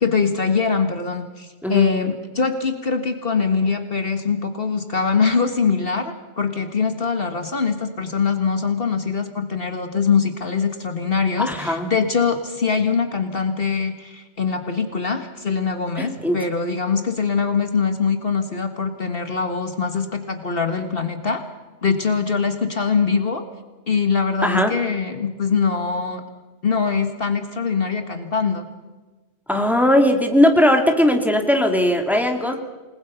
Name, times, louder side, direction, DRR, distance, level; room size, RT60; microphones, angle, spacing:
voice 1, 0.0-21.4 21.8-23.4 23.9-26.2 26.6-28.6, left 5 dB, 55° left, 7 dB, 1.8 m, -22 dB
voice 2, 11.4-11.9 16.0-16.4 24.4-24.7 29.5-32.5, left 1 dB, ahead, 3 dB, 2.4 m, -18 dB
28.5 x 20.0 x 5.7 m, 1.2 s
omnidirectional pair, 1.2 m